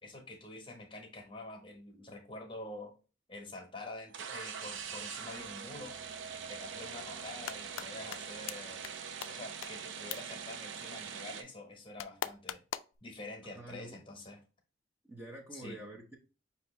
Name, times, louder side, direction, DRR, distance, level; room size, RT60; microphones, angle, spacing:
voice 1, 0.0-2.9 3.3-5.9 6.4-8.8 9.3-12.6 13.0-14.4 15.5-15.8, left 2 dB, 25° left, 3 dB, 1.0 m, -47 dB
sound 1, 4.1-11.4, right 6 dB, 75° right, 0.5 m, -43 dB
sound 2, 7.2-7.9 8.1-8.2 8.5-8.6 8.8-8.9 9.2-9.3 9.6-9.7 10.1-10.2 12.0-13.0, left 10 dB, 90° left, 0.3 m, -38 dB
voice 2, 13.4-14.0 15.0-16.2, right 1 dB, 10° right, -1 dB, 0.6 m, -47 dB
5.5 x 2.8 x 3.1 m, 0.33 s
head